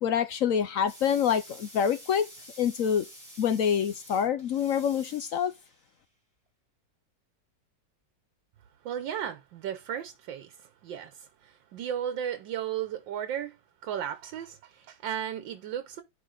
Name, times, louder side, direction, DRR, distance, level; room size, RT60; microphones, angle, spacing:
voice 1, 0.0-2.3 2.6-3.0 3.4-5.5, left 8 dB, 65° left, 0.8 m, -26 dB
sound 1, 0.9-5.9, equal, 10° left, 3.6 m, -49 dB
voice 2, 8.8-13.6 13.8-16.0, right 9 dB, 85° right, 1.5 m, -35 dB
10.5 x 3.8 x 3.9 m
omnidirectional pair, 2.0 m